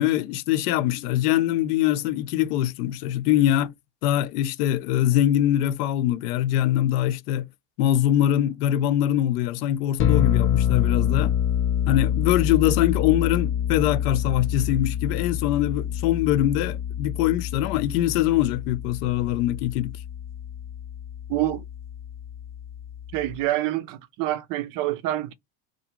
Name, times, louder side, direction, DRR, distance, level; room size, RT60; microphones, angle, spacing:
voice 1, 0.0-3.7 4.0-7.5 7.8-11.3 11.9-20.0, left 12 dB, 85° left, 0.5 m, -23 dB
sound 1, 10.0-23.4, left 10 dB, 30° left, 0.4 m, -27 dB
voice 2, 21.3-21.6 23.1-25.3, right 14 dB, 50° right, 0.4 m, -26 dB
2.5 x 2.2 x 2.8 m
supercardioid pair, 120°, 45 cm